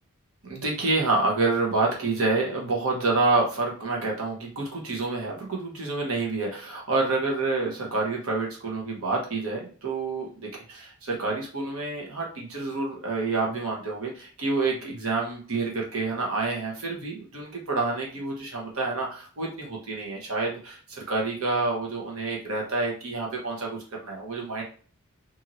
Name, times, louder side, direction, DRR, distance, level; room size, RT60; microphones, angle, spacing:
voice 1, 0.4-24.6, right 3 dB, 75° right, -2 dB, 1.0 m, -28 dB
2.9 x 2.7 x 2.6 m, 0.42 s
head